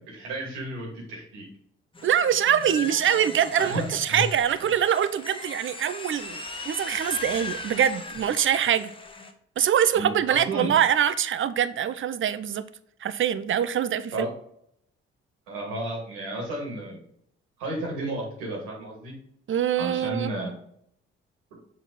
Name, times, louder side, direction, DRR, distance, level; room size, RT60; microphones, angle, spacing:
voice 1, 0.0-1.5 3.6-4.2 4.6-4.7 9.9-10.7 14.1-14.3 15.5-17.0 17.6-19.1 19.8-20.5, right 2 dB, 80° right, -2 dB, 2.4 m, -32 dB
sound 1, 1.9-9.3, left 2 dB, 15° left, 1.2 m, -38 dB
voice 2, 2.0-8.9 9.6-12.6 13.0-14.3 19.5-20.3, right 9 dB, 40° right, 13 dB, 0.6 m, -24 dB
7.2 x 3.9 x 4.0 m, 0.69 s
hypercardioid pair, 45°, 30 cm